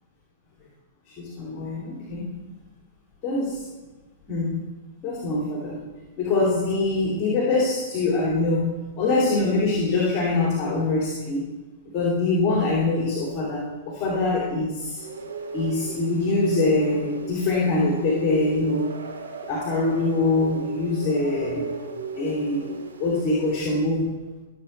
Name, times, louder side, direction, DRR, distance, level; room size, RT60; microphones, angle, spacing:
voice 1, 1.2-2.4 3.2-3.7 4.3-4.6 5.0-5.8 6.2-11.5 11.9-15.0 15.5-18.9 19.4-21.6 22.1-22.7 23.0-24.1, left 2 dB, 30° left, -4 dB, 2.7 m, -24 dB
sound 1, 15.0-23.6, right 3 dB, 80° right, 2.8 m, -35 dB
14.5 x 7.7 x 3.3 m, 1.3 s
hypercardioid pair, 115°, 0 cm